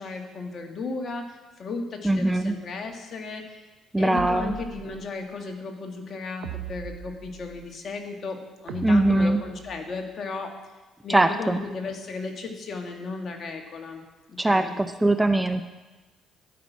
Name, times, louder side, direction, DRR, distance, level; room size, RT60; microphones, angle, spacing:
voice 1, 0.0-3.6 4.0-10.6 11.0-14.0 14.3-14.8, left 3 dB, 50° left, 3 dB, 1.9 m, -35 dB
voice 2, 2.0-2.5 3.9-4.5 8.8-9.4 11.1-11.6 14.4-15.7, right 1 dB, 10° right, 9 dB, 0.6 m, -21 dB
sound 1, 4.1-5.2 6.4-7.7 8.7-9.9, right 10 dB, 80° right, 0.8 m, -39 dB
12.0 x 6.0 x 8.4 m, 1.2 s
supercardioid pair, 80°, 0 cm